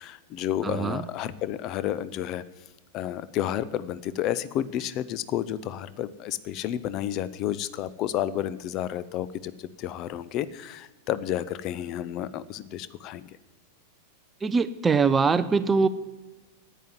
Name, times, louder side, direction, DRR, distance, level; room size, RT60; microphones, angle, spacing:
voice 1, 0.0-2.4 2.9-13.4, left 11 dB, 40° left, 16 dB, 0.7 m, -31 dB
voice 2, 0.6-1.0 14.4-15.9, right 5 dB, 15° right, 13 dB, 0.5 m, -22 dB
10.5 x 9.2 x 9.6 m, 1.2 s
figure-of-eight pair, 90°, 0 cm